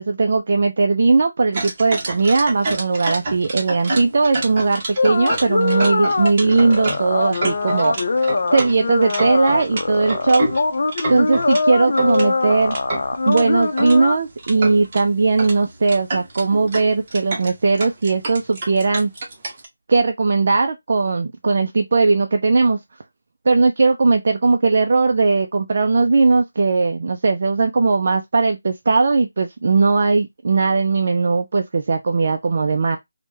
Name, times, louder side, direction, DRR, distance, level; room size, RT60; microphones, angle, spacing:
voice 1, 0.0-8.0 8.5-10.5 11.1-12.8 13.3-19.1 19.9-22.8 23.5-33.0, right 3 dB, 45° right, 0.3 m, -18 dB
sound 1, 1.5-11.6 12.0-14.0 14.4-15.0 15.4-15.6 15.8-19.7, right 2 dB, 30° right, 0.8 m, -29 dB
sound 2, 5.0-14.2, left 3 dB, 55° left, 0.5 m, -22 dB
3.2 x 2.1 x 3.0 m
figure-of-eight pair, 165°, 0 cm